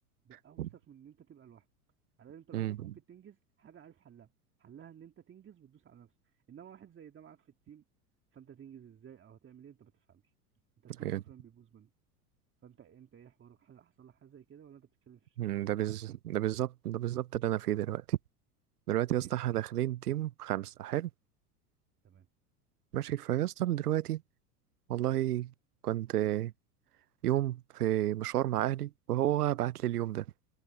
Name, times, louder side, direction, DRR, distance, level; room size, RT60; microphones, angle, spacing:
voice 1, 0.2-1.7 2.2-4.3 4.6-7.8 8.3-10.3 10.8-11.9 12.6-16.0 19.1-19.3 22.0-22.3, right 9 dB, 25° right, 2.2 m, -55 dB
voice 2, 2.5-2.9 11.0-11.2 15.4-18.2 18.9-21.1 22.9-24.2 24.9-25.5 25.8-26.5 27.2-30.2, right 13 dB, 80° right, 0.7 m, -31 dB
hypercardioid pair, 85°, 45 cm